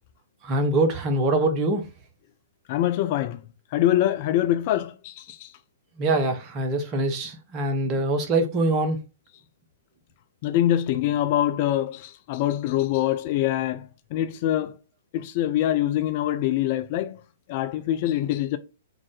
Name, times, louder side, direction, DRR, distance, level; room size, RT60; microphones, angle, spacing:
voice 1, 0.4-1.8 6.0-9.0, right 2 dB, 30° right, 0.8 m, -23 dB
voice 2, 2.7-3.4 3.7-5.5 10.4-14.7 15.1-17.2 17.5-18.6, left 12 dB, 40° left, 0.3 m, -24 dB
3.7 x 2.4 x 3.7 m
figure-of-eight pair, 115°, 0 cm